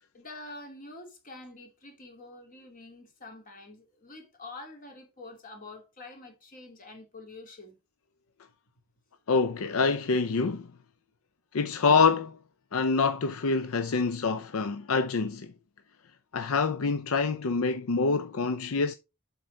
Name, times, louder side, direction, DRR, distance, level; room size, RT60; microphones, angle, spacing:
voice 1, 0.1-7.8, left 2 dB, 40° left, 2.5 m, -46 dB
voice 2, 9.3-10.7 11.5-12.4 12.7-15.5 16.3-18.9, left 4 dB, 70° left, 0.5 m, -26 dB
7.7 x 5.1 x 3.8 m
head